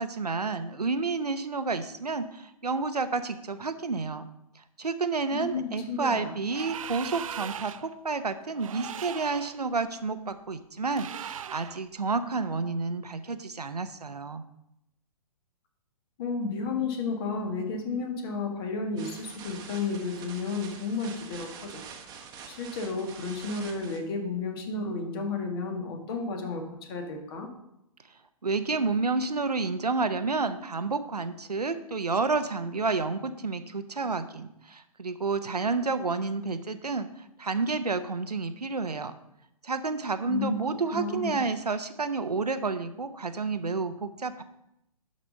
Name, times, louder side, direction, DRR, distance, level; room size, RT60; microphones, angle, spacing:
voice 1, 0.0-4.3 4.8-14.4 28.4-37.1 37.4-39.1 39.6-44.4, right 4 dB, 85° right, 10 dB, 0.8 m, -30 dB
voice 2, 5.3-6.3 16.2-21.8 22.5-26.6 26.9-27.5 40.3-40.6 40.9-41.4, left 4 dB, 40° left, 3 dB, 1.8 m, -32 dB
sound 1, 6.5-7.9 8.6-9.6 10.9-11.8, right 9 dB, 60° right, 0.4 m, -39 dB
sound 2, 19.0-24.0, right 6 dB, 20° right, 1.1 m, -45 dB
11.5 x 4.3 x 5.2 m, 0.81 s
figure-of-eight pair, 125°, 20 cm